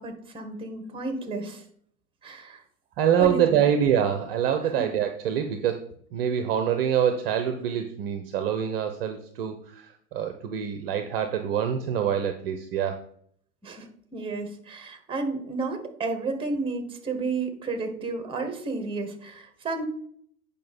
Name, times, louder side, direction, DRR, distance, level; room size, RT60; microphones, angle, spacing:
voice 1, 0.0-1.6 2.2-2.6 3.2-3.6 4.6-4.9 13.6-19.8, right 3 dB, 10° right, 6 dB, 1.2 m, -32 dB
voice 2, 3.0-5.8 6.1-13.0, right 8 dB, 35° right, 7 dB, 0.7 m, -25 dB
8.5 x 5.3 x 4.2 m, 0.65 s
figure-of-eight pair, 95°, 47 cm